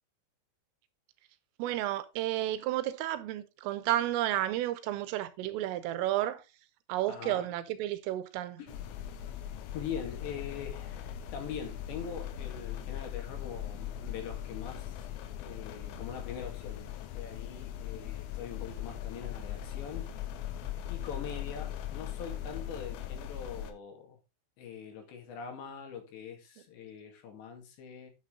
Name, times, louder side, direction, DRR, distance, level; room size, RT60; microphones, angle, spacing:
voice 1, 1.6-6.4 6.9-8.6, right 14 dB, 85° right, 3.6 m, -32 dB
voice 2, 7.1-7.5 8.6-8.8 9.7-15.1 15.4-20.1 20.9-24.2 24.6-28.1, left 7 dB, 65° left, 4.3 m, -43 dB
sound 1, 8.7-23.7, left 10 dB, 90° left, 3.7 m, -40 dB
9.1 x 8.4 x 3.8 m
omnidirectional pair, 5.8 m